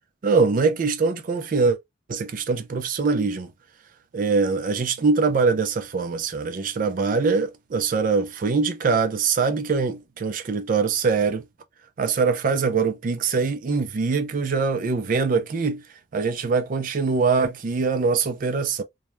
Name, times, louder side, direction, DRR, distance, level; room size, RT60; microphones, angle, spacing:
voice 1, 0.2-1.8 2.1-3.5 4.1-11.4 12.0-15.8 16.1-18.8, right 4 dB, 50° right, 0.4 m, -23 dB
2.2 x 2.1 x 3.0 m
head